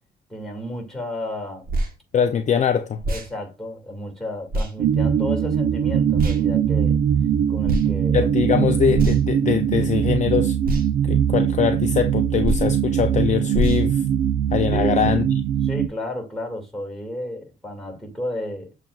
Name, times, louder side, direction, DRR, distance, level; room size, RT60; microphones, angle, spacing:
voice 1, 0.3-1.7 3.1-7.0 7.5-8.3 14.7-15.2 15.6-18.7, left 1 dB, ahead, 2.0 m, -32 dB
sound 1, 1.7-1.9 3.0-3.3 4.5-4.7 6.2-6.4 7.6-7.9 8.9-9.4 10.6-10.9 12.4-12.7 13.5-13.8, right 1 dB, 50° right, 1.2 m, -24 dB
voice 2, 2.1-3.0 8.1-10.6 11.0-14.0 14.5-15.2, left 7 dB, 35° left, 0.4 m, -22 dB
sound 2, 4.8-15.9, right 9 dB, 80° right, 0.5 m, -21 dB
7.0 x 2.5 x 2.3 m
cardioid pair, 90°, 20 cm